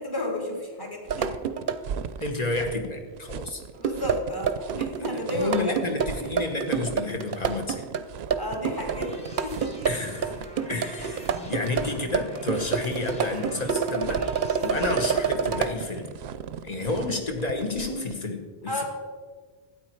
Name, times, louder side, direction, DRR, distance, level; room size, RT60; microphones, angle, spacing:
voice 1, 0.0-1.4 3.8-6.0 8.3-9.2 9.4-9.7 11.0-11.1 18.7-18.8, left 1 dB, 20° left, 0 dB, 2.0 m, -32 dB
sound 1, 1.1-1.8 3.8-15.7, right 6 dB, 60° right, 0.8 m, -27 dB
sound 2, 1.1-18.1, right 8 dB, 85° right, 0.8 m, -39 dB
voice 2, 2.2-3.6 5.3-7.9 9.8-10.3 10.7-16.1 16.6-18.8, left 2 dB, 40° left, 4 dB, 1.4 m, -30 dB
sound 3, 8.4-15.3, right 1 dB, 5° left, 1.7 m, -44 dB
12.5 x 9.1 x 4.6 m, 1.5 s
omnidirectional pair, 1.0 m